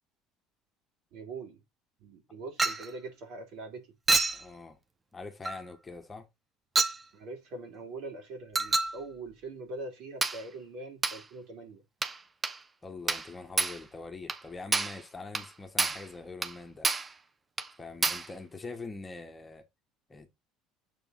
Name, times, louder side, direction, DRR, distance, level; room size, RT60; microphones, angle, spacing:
voice 1, 1.1-1.6 2.0-4.0 7.1-11.8, right 2 dB, 55° right, 3.0 m, -42 dB
Chink clink, 2.6-2.9 4.1-4.4 5.4-5.6 6.8-7.0 8.5-9.0 10.2-10.4 11.0-11.2 12.0-12.2 12.4-12.6 13.1-13.3 13.6-13.8 14.3-14.4 14.7-15.0 15.3-15.5 15.8-16.1 16.4-16.6 16.8-17.1 17.6-17.7 18.0-18.3, right 3 dB, 25° right, 0.9 m, -28 dB
voice 2, 4.3-4.8 5.1-6.3 12.8-16.9 17.8-19.6 20.1-20.3, left 3 dB, 20° left, 1.6 m, -44 dB
7.5 x 3.8 x 4.0 m
figure-of-eight pair, 60°, 0 cm